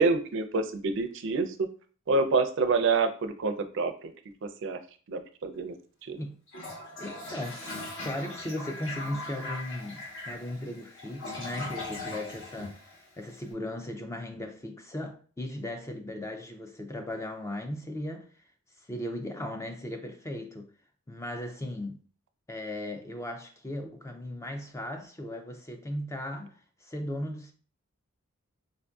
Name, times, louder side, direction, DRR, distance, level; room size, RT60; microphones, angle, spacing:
voice 1, 0.0-1.7 2.1-4.1 4.4-4.8 5.1-5.7 6.1-6.2, right 4 dB, 60° right, 0.4 m, -27 dB
Toilet flush, 6.5-13.4, left 2 dB, 60° left, 1.1 m, -40 dB
voice 2, 7.0-18.3 18.8-20.7 21.1-22.0 22.5-27.5, left 1 dB, 15° left, 0.3 m, -37 dB
4.3 x 2.5 x 2.3 m
head